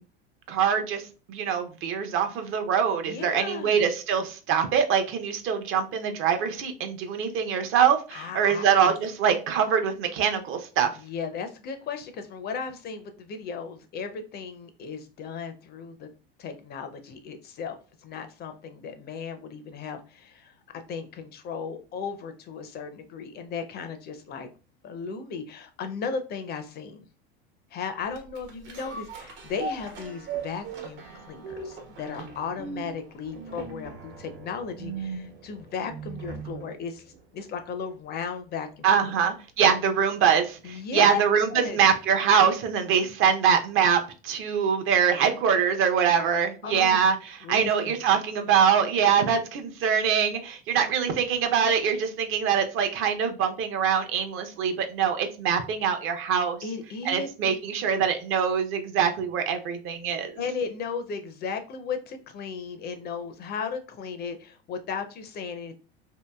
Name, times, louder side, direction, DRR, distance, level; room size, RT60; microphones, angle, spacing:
voice 1, 0.5-1.0 1.3-11.0 38.8-56.6 57.0-60.3, right 7 dB, 45° right, 0.6 m, -24 dB
voice 2, 3.0-3.8 8.1-9.0 11.0-16.1 16.4-17.8 18.0-24.5 24.8-27.0 27.7-37.0 37.3-39.2 40.6-41.2 41.5-41.8 46.6-47.1 47.4-48.0 56.6-57.5 60.4-65.8, left 5 dB, 35° left, 0.4 m, -35 dB
sound 1, 28.1-36.7 37.1-37.2, right 5 dB, 70° right, 1.1 m, -39 dB
2.7 x 2.6 x 2.2 m
hypercardioid pair, 90°, 30 cm